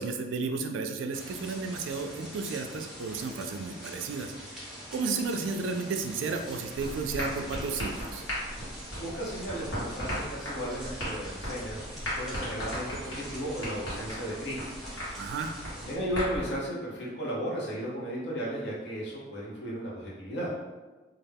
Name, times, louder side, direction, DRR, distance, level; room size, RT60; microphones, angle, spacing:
voice 1, 0.0-4.3 4.9-8.2 15.2-15.5, right 4 dB, 80° right, 5 dB, 0.3 m, -33 dB
sound 1, 1.1-16.0, equal, ahead, 0.6 m, -45 dB
sound 2, 6.8-16.6, equal, 90° left, 1.2 m, -37 dB
voice 2, 9.0-14.9 15.8-20.5, equal, 60° left, -5 dB, 0.8 m, -35 dB
2.4 x 2.2 x 3.3 m, 1.2 s
head